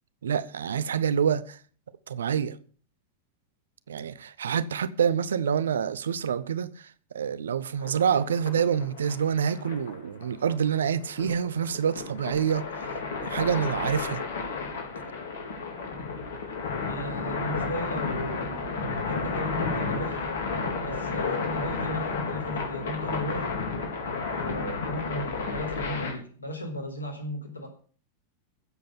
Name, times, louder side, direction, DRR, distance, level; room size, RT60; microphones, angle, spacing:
voice 1, 0.2-1.6 2.1-2.6 3.9-12.9 13.2-14.2, right 7 dB, 65° right, 0.8 m, -27 dB
sound 1, 7.8-26.1, left 4 dB, 60° left, 4.1 m, -32 dB
voice 2, 16.9-20.4 20.8-23.6 24.4-27.7, left 1 dB, 80° left, 4.1 m, -35 dB
15.5 x 7.8 x 7.2 m
figure-of-eight pair, 90°, 0 cm